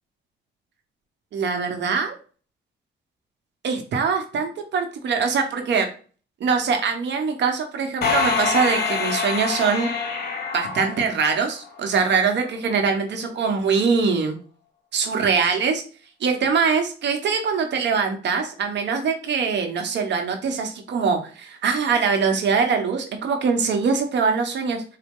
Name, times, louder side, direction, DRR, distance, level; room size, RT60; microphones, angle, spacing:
voice 1, 1.3-2.2 3.6-5.9 6.4-9.9 10.5-14.4 14.9-15.8 16.2-24.8, right 5 dB, 65° right, 4 dB, 0.9 m, -23 dB
sound 1, 8.0-11.7, left 5 dB, 55° left, 0.9 m, -25 dB
4.0 x 2.1 x 3.6 m, 0.39 s
cardioid pair, 90°, 20 cm